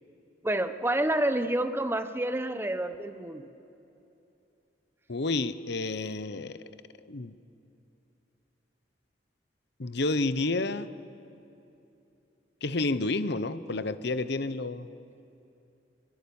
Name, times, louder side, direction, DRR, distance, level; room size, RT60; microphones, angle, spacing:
voice 1, 0.4-3.5, right 1 dB, 15° right, 9 dB, 1.1 m, -28 dB
voice 2, 5.1-6.6 7.1-7.3 9.8-10.9 12.6-14.9, left 2 dB, 65° left, 13 dB, 0.9 m, -30 dB
28.0 x 23.0 x 7.1 m, 2.8 s
head